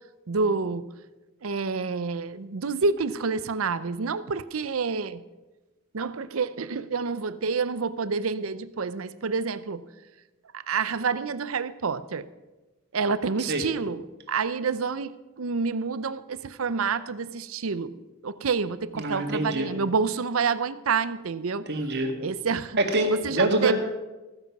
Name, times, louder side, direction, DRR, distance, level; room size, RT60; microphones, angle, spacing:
voice 1, 0.3-0.8 1.4-5.2 5.9-9.8 10.5-12.3 12.9-21.6 22.2-22.8 23.1-23.7, right 5 dB, 85° right, 15 dB, 0.6 m, -28 dB
voice 2, 18.9-19.7 21.7-22.1 22.8-23.7, right 2 dB, 55° right, 3 dB, 2.0 m, -25 dB
15.0 x 9.4 x 5.9 m, 1.1 s
head